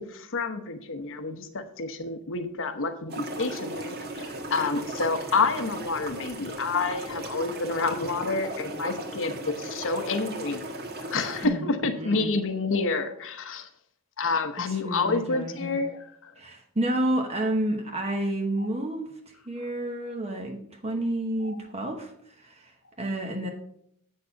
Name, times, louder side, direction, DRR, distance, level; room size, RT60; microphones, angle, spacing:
voice 1, 0.0-10.6 10.9-13.7 14.2-16.3 18.6-18.7 21.4-21.5, left 3 dB, 60° left, 9 dB, 1.0 m, -29 dB
sound 1, 3.1-11.5, right 1 dB, 45° right, 1.6 m, -36 dB
voice 2, 11.4-12.4 14.7-15.8 16.4-22.1 22.4-23.5, right 1 dB, 30° right, 3 dB, 0.9 m, -30 dB
8.3 x 6.5 x 5.8 m, 0.71 s
head